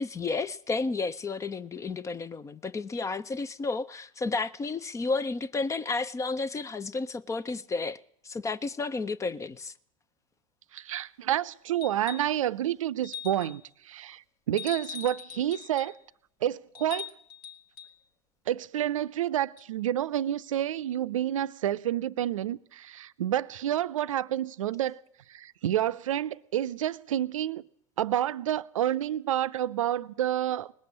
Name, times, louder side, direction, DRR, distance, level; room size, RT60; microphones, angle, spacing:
voice 1, 0.0-9.7, left 3 dB, 15° left, 0.5 m, -32 dB
voice 2, 10.7-15.9 16.4-17.1 18.5-25.0 25.3-27.6 28.0-30.7, right 11 dB, 70° right, 0.6 m, -29 dB
sound 1, 11.8-12.4 13.0-13.6 14.6-16.0 16.7-17.9 19.6-19.7, left 8 dB, 55° left, 1.3 m, -42 dB
19.0 x 7.6 x 8.4 m
figure-of-eight pair, 80°, 17 cm